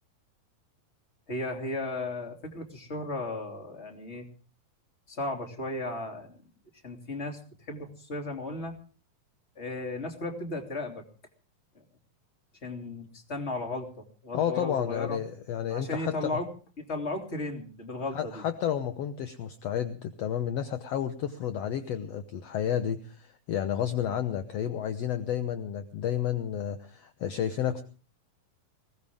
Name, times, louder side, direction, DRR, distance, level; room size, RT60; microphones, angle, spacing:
voice 1, 1.3-4.3 5.1-6.4 6.8-7.4 7.7-8.8 9.6-11.0 12.6-15.2 15.7-16.5 16.8-18.4, left 2 dB, 20° left, 3 dB, 2.8 m, -35 dB
voice 2, 14.3-16.4 18.1-27.8, left 9 dB, 65° left, 9 dB, 1.6 m, -31 dB
21.0 x 18.5 x 3.5 m, 0.37 s
omnidirectional pair, 4.1 m